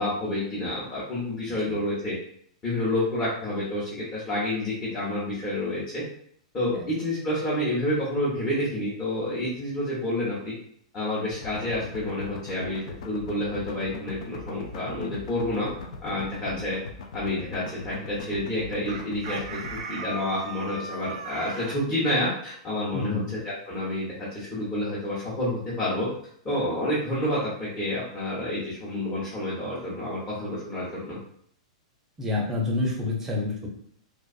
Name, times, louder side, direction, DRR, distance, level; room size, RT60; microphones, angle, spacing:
voice 1, 0.0-2.2 2.6-6.0 6.5-10.5 10.9-15.7 16.0-16.8 17.1-26.1 26.4-31.2, left 1 dB, 20° left, -9 dB, 0.9 m, -29 dB
sound 1, 11.3-19.8, left 4 dB, 70° left, 0.4 m, -40 dB
Chicken rooster, 18.9-21.8, right 4 dB, 75° right, 0.4 m, -37 dB
voice 2, 22.9-23.3 32.2-33.7, left 2 dB, 10° right, -1 dB, 0.6 m, -28 dB
2.5 x 2.4 x 2.4 m, 0.64 s
hypercardioid pair, 145°, 4 cm